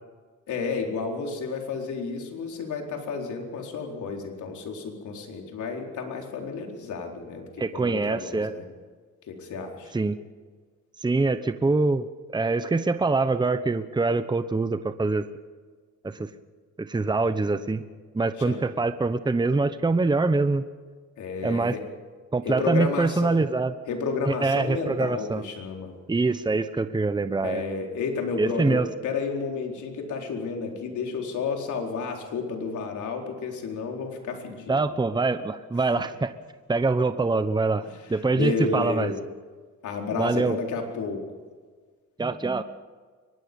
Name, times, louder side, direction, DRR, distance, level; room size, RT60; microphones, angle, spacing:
voice 1, 0.5-8.7 9.3-9.9 18.4-18.6 21.2-21.8 22.4-23.4 23.9-25.9 27.4-34.9 37.8-39.2 39.8-41.2, left 4 dB, 75° left, 2 dB, 4.4 m, -31 dB
voice 2, 7.6-8.5 9.9-10.2 11.0-12.1 12.3-15.3 16.0-16.3 16.8-17.8 18.1-20.6 21.4-21.7 22.3-23.7 24.3-25.4 26.1-27.6 28.4-28.9 34.7-36.3 36.7-39.1 40.2-40.6 42.2-42.6, right 3 dB, 15° right, 11 dB, 1.0 m, -24 dB
23.5 x 20.5 x 5.4 m, 1.5 s
cardioid pair, 90°, 30 cm